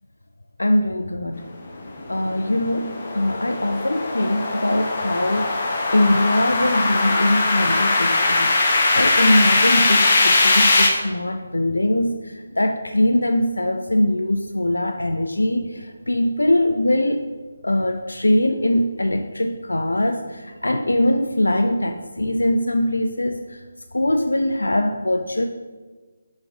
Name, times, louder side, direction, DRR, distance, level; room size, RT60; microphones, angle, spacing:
voice 1, 0.6-1.4 2.1-2.9 3.1-5.5 5.9-17.2 17.6-23.6 23.9-25.4, left 1 dB, 80° left, 5 dB, 0.5 m, -22 dB
sound 1, 1.8-10.9, left 2 dB, 40° left, 1.1 m, -20 dB
6.6 x 4.0 x 4.9 m, 1.4 s
figure-of-eight pair, 150°, 0 cm